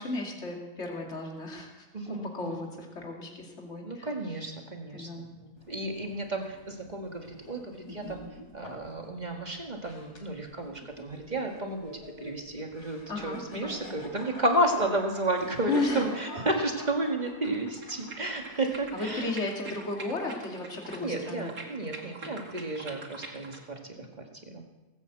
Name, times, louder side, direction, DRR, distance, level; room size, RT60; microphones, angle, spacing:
voice 1, 0.0-4.1 4.9-5.3 13.1-13.7 15.7-16.0 18.5-18.6 18.9-21.5, left 3 dB, 45° left, 0 dB, 2.8 m, -34 dB
voice 2, 1.9-2.6 3.8-8.2 8.5-19.3 21.0-24.6, right 1 dB, 30° right, 2 dB, 1.9 m, -32 dB
sound 1, 5.6-19.2, left 1 dB, 85° left, 3.5 m, -47 dB
sound 2, 17.5-23.6, right 3 dB, 65° right, 2.6 m, -45 dB
18.5 x 8.9 x 8.0 m, 1.1 s
omnidirectional pair, 1.6 m